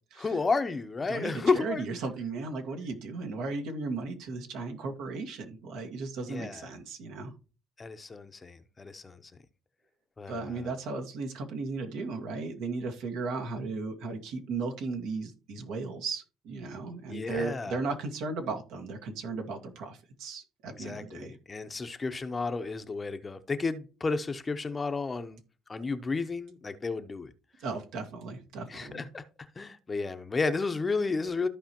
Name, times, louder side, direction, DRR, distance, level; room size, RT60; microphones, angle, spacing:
voice 1, 0.2-1.8 6.3-6.7 7.8-9.3 10.2-10.7 17.1-17.8 20.8-25.4 25.7-27.3 28.7-29.2 29.6-31.5, left 4 dB, 20° left, 0.7 m, -32 dB
voice 2, 1.1-7.3 10.3-21.4 27.6-29.1, right 3 dB, 80° right, 1.8 m, -36 dB
14.0 x 4.9 x 3.0 m
cardioid pair, 125°, 0 cm